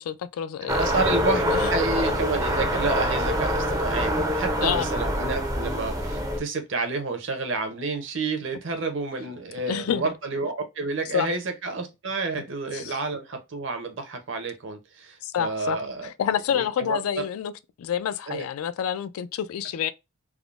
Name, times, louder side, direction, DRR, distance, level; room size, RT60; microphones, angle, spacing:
voice 1, 0.0-0.9 1.5-1.7 4.6-4.9 9.7-10.1 11.1-11.3 12.7-13.0 15.2-15.8 16.0-17.5 17.8-19.9, left 9 dB, 90° left, 0.3 m, -28 dB
voice 2, 0.6-1.4 1.7-16.1 16.5-17.0 18.3-18.5, right 3 dB, 60° right, 0.7 m, -30 dB
sound 1, 0.7-6.4, equal, 15° right, 0.4 m, -25 dB
3.5 x 2.0 x 2.4 m
head